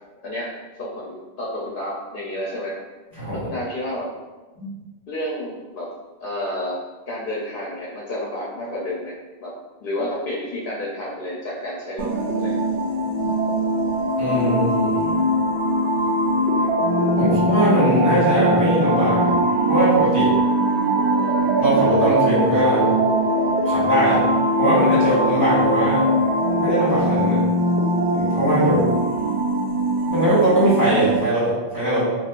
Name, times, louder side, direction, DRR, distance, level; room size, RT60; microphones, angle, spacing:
voice 1, 0.8-2.8 3.4-4.1 5.1-5.9 6.2-6.8 7.1-9.1 9.4-9.5 9.8-12.1 12.3-12.6 20.9-21.4, left 1 dB, 65° left, -4 dB, 0.7 m, -30 dB
sound 1, 12.0-31.2, right 1 dB, 85° right, 0.9 m, -21 dB
voice 2, 14.2-15.3 17.2-19.3 19.7-20.3 21.6-22.8 23.6-24.2 24.6-26.0 26.5-27.4 28.1-28.8 30.1-32.0, right 1 dB, 40° right, -11 dB, 1.4 m, -20 dB
4.4 x 2.3 x 2.4 m, 1.2 s
omnidirectional pair, 1.1 m